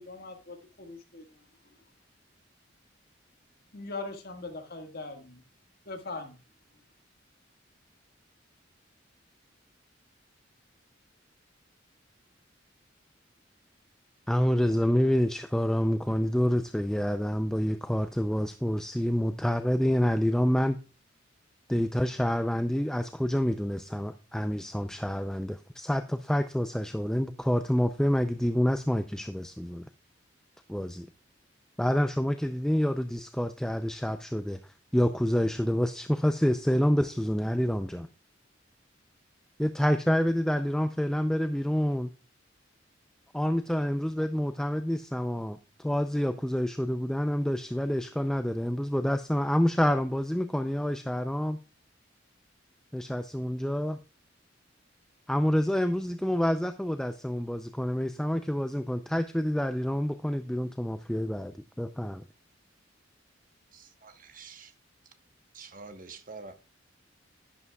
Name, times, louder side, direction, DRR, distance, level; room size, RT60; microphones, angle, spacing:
voice 1, 0.0-1.4 3.7-5.4 5.9-6.4, left 3 dB, 55° left, 1.8 m, -41 dB
voice 2, 14.3-20.8 21.7-29.9 30.7-31.1 31.8-38.1 39.6-42.1 43.3-51.6 52.9-54.0 55.3-62.2, equal, 5° left, 0.4 m, -28 dB
voice 3, 63.7-64.7 65.0-65.2 65.5-66.5, right 4 dB, 45° right, 1.1 m, -47 dB
11.0 x 11.0 x 2.3 m
head